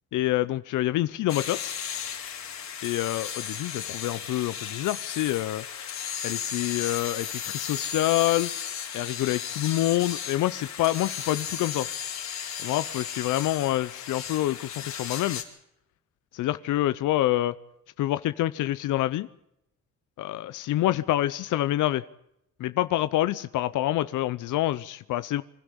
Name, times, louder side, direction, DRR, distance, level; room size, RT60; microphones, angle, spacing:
voice 1, 0.1-1.7 2.8-5.6 6.2-8.5 8.9-11.9 12.6-15.4 16.3-17.5 18.0-19.3 20.2-22.0 22.6-25.4, left 15 dB, 85° left, 14 dB, 0.8 m, -27 dB
sound 1, 1.3-15.4, left 8 dB, 60° left, 4.7 m, -35 dB
26.5 x 12.5 x 9.9 m, 0.80 s
cardioid pair, 90°, 30 cm